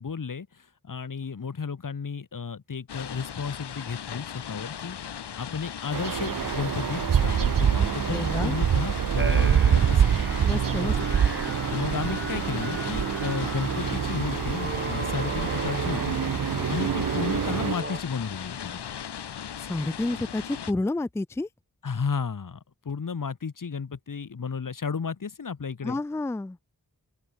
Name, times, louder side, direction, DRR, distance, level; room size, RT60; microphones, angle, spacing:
voice 1, 0.0-5.0 5.4-10.2 10.8-11.1 11.7-16.2 16.7-18.9 21.8-22.6 22.8-26.0, left 5 dB, 55° left, 1.1 m, -33 dB
sound 1, 2.9-20.7, left 8 dB, 85° left, 0.7 m, -38 dB
sound 2, 5.9-17.7, right 8 dB, 55° right, 0.6 m, -25 dB
voice 2, 8.1-8.6 10.4-11.2 19.6-21.5 25.8-26.6, left 2 dB, 5° left, 0.4 m, -30 dB
sound 3, 9.2-18.0, right 2 dB, 30° right, 1.8 m, -37 dB
open air
wide cardioid pair, 40°, 39 cm